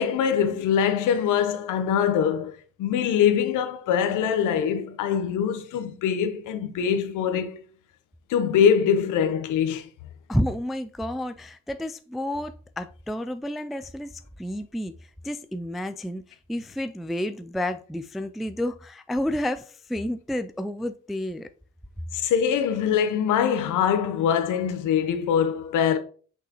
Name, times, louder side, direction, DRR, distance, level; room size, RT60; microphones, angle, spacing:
voice 1, 0.0-2.5 2.8-7.6 8.3-9.9 22.1-26.0, left 8 dB, 90° left, 0.9 m, -23 dB
voice 2, 10.3-14.9 15.2-16.2 16.5-21.5, left 1 dB, ahead, 0.3 m, -30 dB
6.2 x 5.5 x 3.0 m
cardioid pair, 90°, 30 cm